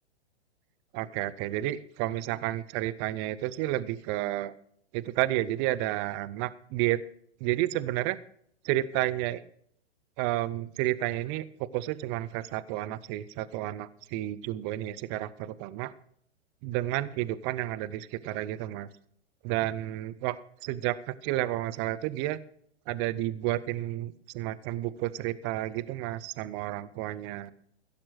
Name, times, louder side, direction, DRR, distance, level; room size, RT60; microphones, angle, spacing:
voice 1, 0.9-4.5 4.9-7.0 7.4-8.2 8.6-9.4 10.2-15.9 16.6-18.9 19.4-20.4 20.6-22.4 22.9-27.5, right 15 dB, 25° right, 15 dB, 0.5 m, -31 dB
15.5 x 7.1 x 6.3 m, 0.65 s
hypercardioid pair, 120°, 33 cm